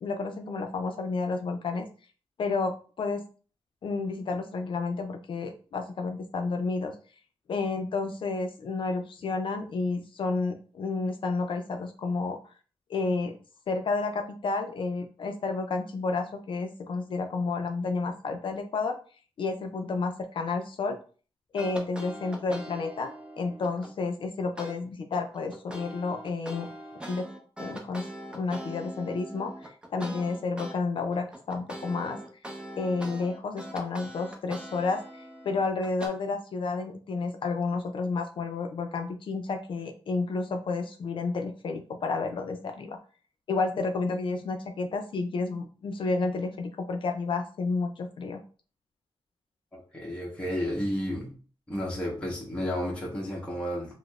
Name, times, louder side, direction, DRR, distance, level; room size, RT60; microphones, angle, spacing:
voice 1, 0.0-1.9 2.4-3.2 3.8-6.9 7.5-12.4 12.9-13.3 13.7-18.9 19.4-21.0 21.5-23.1 23.4-26.7 27.1-27.3 27.6-32.2 32.8-43.0 43.5-48.4, left 3 dB, 60° left, 5 dB, 0.4 m, -31 dB
sound 1, 21.6-23.9 24.6-24.7 25.1-30.8 31.1-36.1, right 1 dB, 10° right, 0.7 m, -42 dB
voice 2, 49.7-51.3 51.7-53.9, equal, 10° left, -5 dB, 1.0 m, -32 dB
4.9 x 2.0 x 2.3 m, 0.39 s
wide cardioid pair, 110°, 10 cm